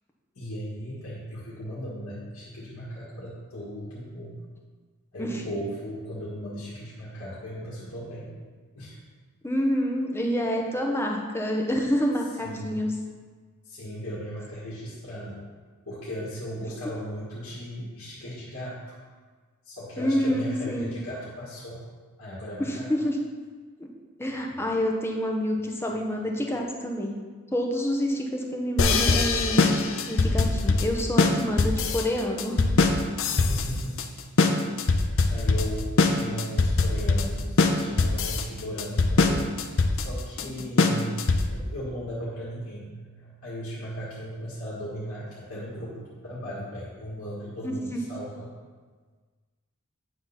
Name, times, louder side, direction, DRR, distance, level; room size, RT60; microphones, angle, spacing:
voice 1, 0.4-4.4 5.1-8.4 8.8-9.0 12.4-12.8 13.7-15.4 15.9-19.0 19.6-21.8 22.2-22.9 24.5-24.6 33.3-34.0 35.3-39.5 39.9-48.5, equal, 80° left, -9 dB, 1.9 m, -37 dB
voice 2, 9.4-12.9 20.0-21.0 22.6-23.2 23.8-23.9 24.2-27.2 27.5-29.8 30.1-32.6 47.6-48.0, equal, 10° left, 0 dB, 0.8 m, -27 dB
sound 1, 28.8-41.7, left 3 dB, 60° left, 0.6 m, -22 dB
9.0 x 3.8 x 5.7 m, 1.5 s
head